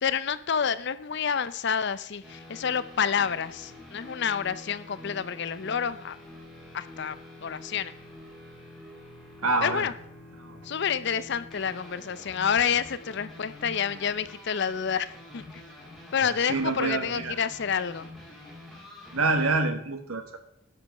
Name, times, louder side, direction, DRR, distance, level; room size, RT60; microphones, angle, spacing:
voice 1, 0.0-6.2 6.7-7.2 7.4-7.9 9.6-9.9 10.6-15.4 16.1-18.1, left 7 dB, 55° left, 15 dB, 0.5 m, -28 dB
sound 1, 2.2-19.5, left 1 dB, ahead, 2.4 m, -47 dB
voice 2, 9.4-9.9 10.4-10.6 16.5-17.4 19.1-20.4, right 3 dB, 90° right, 6 dB, 1.5 m, -27 dB
11.0 x 5.4 x 6.5 m, 0.78 s
head